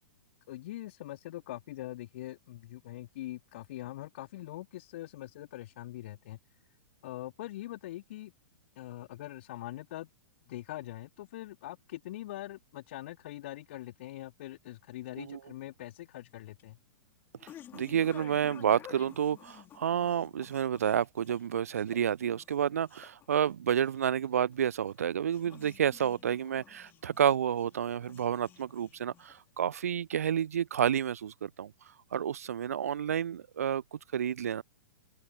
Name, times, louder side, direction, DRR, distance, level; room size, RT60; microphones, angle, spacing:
voice 1, 0.5-6.4 7.0-8.3 8.8-10.1 10.5-16.8, left 15 dB, 50° left, 3.1 m, -43 dB
sound 1, 16.1-29.7, left 11 dB, 25° left, 3.5 m, -54 dB
voice 2, 17.7-31.7 32.1-34.6, right 9 dB, 65° right, 0.4 m, -30 dB
open air
figure-of-eight pair, 105°, 9 cm